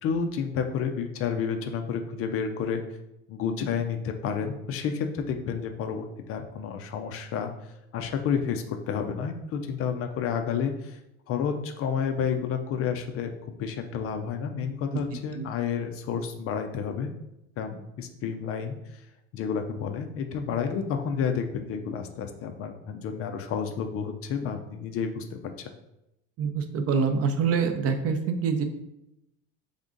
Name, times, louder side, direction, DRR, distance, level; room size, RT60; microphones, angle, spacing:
voice 1, 0.0-2.8 3.3-7.5 7.9-11.0 11.3-17.1 17.6-19.0 19.3-25.7, left 6 dB, 35° left, 6 dB, 0.4 m, -30 dB
voice 2, 26.4-28.6, right 5 dB, 35° right, 7 dB, 0.6 m, -25 dB
3.8 x 3.5 x 3.7 m, 0.88 s
supercardioid pair, 125°, 41 cm